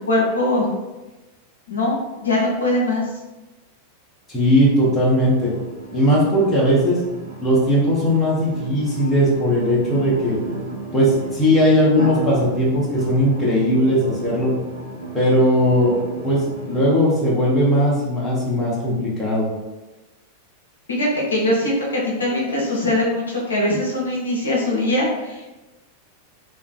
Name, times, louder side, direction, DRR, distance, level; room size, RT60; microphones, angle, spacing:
voice 1, 0.1-0.7 1.7-2.0 2.2-3.1 20.9-25.4, left 1 dB, 70° left, -4 dB, 0.6 m, -21 dB
voice 2, 4.3-5.5 5.9-7.0 7.4-10.4 10.9-14.5 15.1-15.9 16.2-19.5, equal, 15° left, -7 dB, 0.7 m, -18 dB
sound 1, 5.2-16.8, right 3 dB, 70° right, 0.6 m, -33 dB
2.4 x 2.3 x 2.2 m, 1.1 s
figure-of-eight pair, 90°, 0 cm